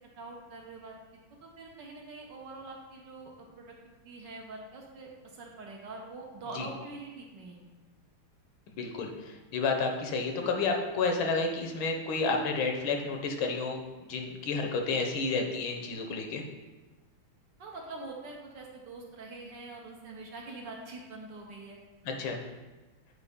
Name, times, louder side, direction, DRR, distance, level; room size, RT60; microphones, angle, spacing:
voice 1, 0.2-1.0 1.4-3.3 3.6-3.7 4.0-7.6 17.6-21.8, right 3 dB, 65° right, 0 dB, 1.4 m, -44 dB
voice 2, 8.8-13.8 14.1-16.4 22.0-22.4, left 4 dB, 70° left, 3 dB, 1.6 m, -30 dB
8.3 x 4.5 x 3.6 m, 1.2 s
omnidirectional pair, 2.4 m